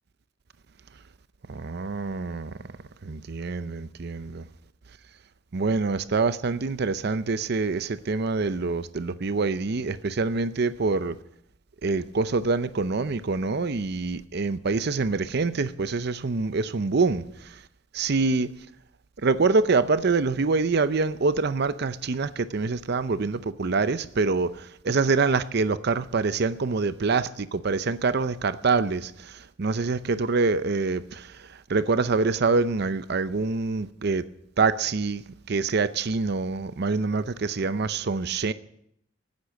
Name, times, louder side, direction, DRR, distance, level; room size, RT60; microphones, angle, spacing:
voice 1, 1.5-2.5 3.0-4.4 5.5-11.1 11.8-17.2 17.9-18.5 19.2-29.3 29.6-31.3 31.7-34.2 34.6-35.2 35.5-38.5, right 4 dB, 60° right, 0.6 m, -25 dB
15.5 x 9.7 x 7.1 m
head